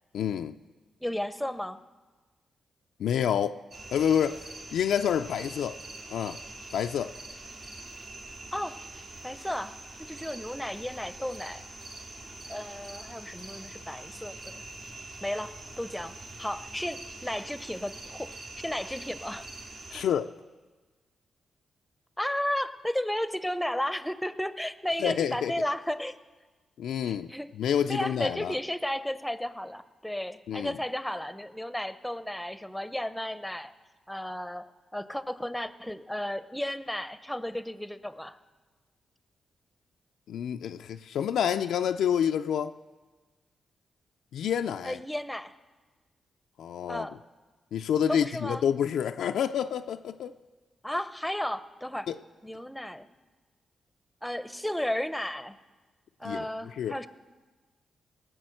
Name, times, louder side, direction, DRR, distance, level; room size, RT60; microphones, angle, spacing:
voice 1, 0.1-0.6 3.0-3.6 3.9-4.4 4.7-5.8 6.1-6.4 6.7-7.1 19.9-20.3 25.0-25.5 26.8-28.6 30.5-30.8 40.3-42.7 44.3-45.0 46.6-47.1 47.7-50.3 52.1-52.2 56.2-57.0, left 9 dB, 85° left, 7 dB, 0.3 m, -28 dB
voice 2, 1.0-1.8 8.5-8.8 9.2-11.6 12.5-14.6 15.2-19.5 19.9-20.0 22.2-26.2 27.1-27.5 27.9-33.7 34.1-38.4 44.8-45.5 46.9-47.1 48.1-48.6 50.8-52.1 52.4-53.1 54.2-55.6 56.2-57.1, left 1 dB, 5° left, 13 dB, 0.7 m, -34 dB
sound 1, 3.7-20.1, right 2 dB, 60° right, 2.3 m, -44 dB
18.5 x 6.2 x 7.7 m, 1.3 s
cardioid pair, 60°, 0 cm